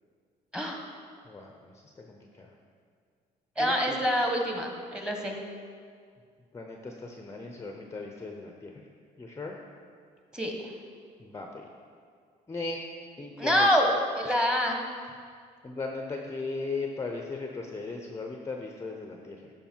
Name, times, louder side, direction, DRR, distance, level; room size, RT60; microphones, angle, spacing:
voice 1, 1.3-2.5 3.6-4.0 6.5-8.8 9.2-9.5 11.2-11.6 12.5-12.8 13.2-13.7 15.6-19.5, left 3 dB, 15° left, 2 dB, 0.7 m, -37 dB
voice 2, 3.6-5.4 10.3-10.7 13.4-13.9 14.2-14.8, equal, 5° right, 1 dB, 1.3 m, -26 dB
13.0 x 5.2 x 4.5 m, 2.1 s
cardioid pair, 110°, 17 cm